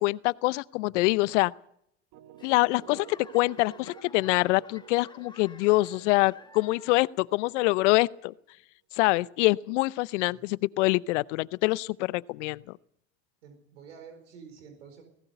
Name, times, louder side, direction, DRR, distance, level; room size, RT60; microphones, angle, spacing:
voice 1, 0.0-1.5 2.4-8.3 8.9-12.8, left 21 dB, 75° left, 0.7 m, -25 dB
sound 1, 2.1-8.0, right 11 dB, 60° right, 1.5 m, -51 dB
Laughter / Clapping / Crowd, 2.4-7.2 7.5-8.0 8.6-8.7, left 3 dB, 10° left, 1.8 m, -52 dB
voice 2, 13.4-15.0, right 6 dB, 90° right, 4.6 m, -49 dB
19.5 x 17.0 x 8.1 m
hypercardioid pair, 95°, 36 cm